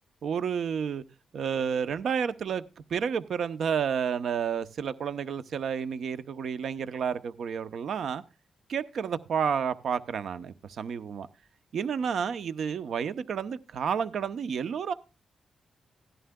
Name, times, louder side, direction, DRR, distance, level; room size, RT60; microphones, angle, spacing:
voice 1, 0.2-1.0 1.3-2.6 2.9-8.2 8.7-11.3 11.7-14.9, right 7 dB, 75° right, 0.7 m, -30 dB
17.0 x 11.0 x 2.2 m
cardioid pair, 65°, 0 cm